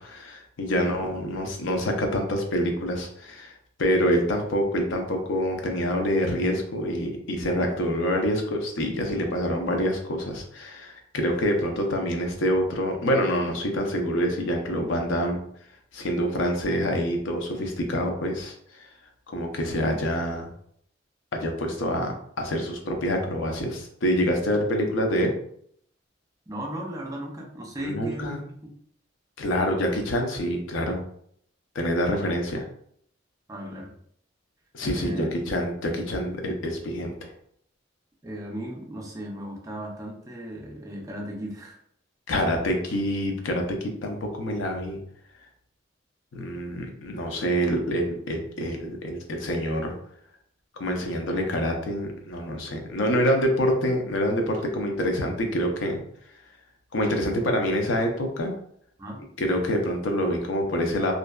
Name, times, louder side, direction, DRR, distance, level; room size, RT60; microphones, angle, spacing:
voice 1, 0.0-3.5 3.8-15.4 15.9-18.5 19.3-20.5 21.3-25.4 27.8-28.4 29.4-31.0 31.7-32.7 34.7-37.1 42.3-45.0 46.3-49.9 50.8-56.0 56.9-58.5 59.4-61.1, equal, 80° left, 3 dB, 0.5 m, -26 dB
voice 2, 26.5-28.7 33.5-33.9 34.9-35.3 38.2-41.8 59.0-59.2, equal, 15° right, 0 dB, 0.4 m, -36 dB
2.5 x 2.1 x 2.2 m, 0.65 s
head